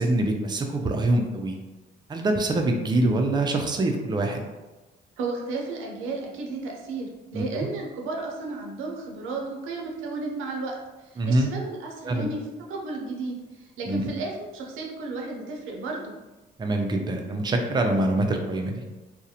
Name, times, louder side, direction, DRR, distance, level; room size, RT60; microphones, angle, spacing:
voice 1, 0.0-1.6 2.1-4.4 7.3-7.4 11.2-11.5 12.0-12.3 13.9-14.0 16.6-18.8, right 2 dB, 20° right, 3 dB, 0.4 m, -24 dB
voice 2, 5.2-12.4 12.7-16.1, right 3 dB, 85° right, 0 dB, 0.5 m, -33 dB
2.4 x 2.0 x 2.7 m, 1.1 s
cardioid pair, 90°, 20 cm